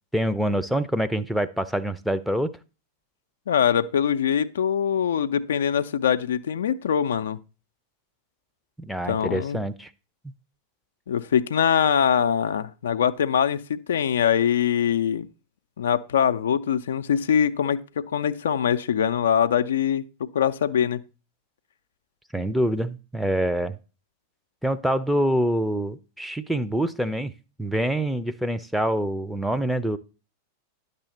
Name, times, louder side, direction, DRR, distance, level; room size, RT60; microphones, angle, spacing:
voice 1, 0.1-2.5 8.8-9.9 22.3-23.8 24.6-27.3 27.6-30.0, right 1 dB, ahead, 0.6 m, -25 dB
voice 2, 3.5-7.4 9.1-9.6 11.1-15.3 15.8-21.0, left 8 dB, 65° left, 0.5 m, -23 dB
10.5 x 6.7 x 4.1 m
figure-of-eight pair, 90°, 0 cm